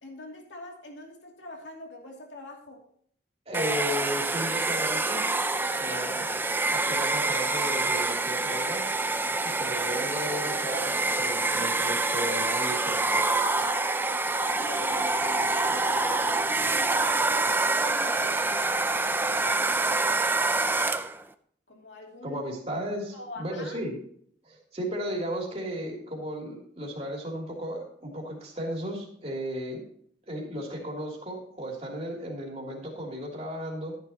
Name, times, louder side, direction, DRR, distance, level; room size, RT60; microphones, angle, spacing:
voice 1, 0.0-2.8 5.7-6.1 14.5-18.4 19.1-20.0 21.7-22.4 23.1-23.8, left 1 dB, 90° left, 1 dB, 2.6 m, -43 dB
Domestic sounds home sounds, 3.5-21.2, right 3 dB, 10° right, 0.4 m, -26 dB
voice 2, 3.5-5.2 5.8-6.3 6.7-8.8 9.4-13.3 22.2-24.0 24.4-29.8 30.3-33.9, equal, 35° right, -1 dB, 3.1 m, -35 dB
13.5 x 10.5 x 2.9 m, 0.63 s
head